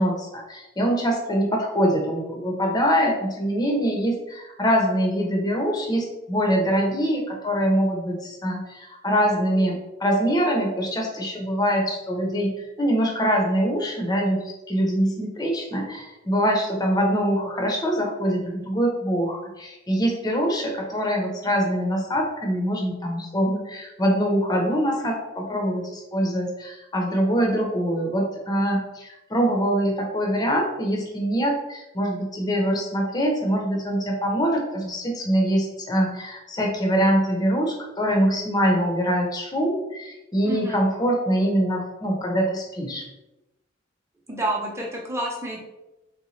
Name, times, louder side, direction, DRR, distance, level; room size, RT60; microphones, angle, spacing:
voice 1, 0.0-43.0, equal, 20° left, 0 dB, 0.7 m, -24 dB
voice 2, 40.4-40.8 44.3-45.6, right 1 dB, 15° right, -2 dB, 0.8 m, -29 dB
4.0 x 3.2 x 3.2 m, 0.99 s
head